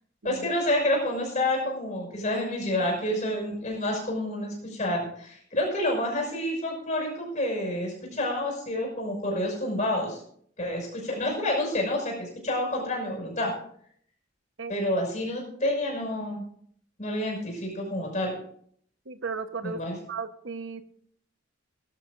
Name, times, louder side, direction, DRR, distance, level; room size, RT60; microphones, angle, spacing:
voice 1, 0.2-10.2 10.6-13.5 14.7-16.4 17.0-18.4 19.6-20.0, left 1 dB, 35° left, 0 dB, 5.9 m, -28 dB
voice 2, 19.1-19.8 20.1-20.8, right 5 dB, 70° right, 9 dB, 1.1 m, -35 dB
19.5 x 12.0 x 2.6 m, 0.62 s
head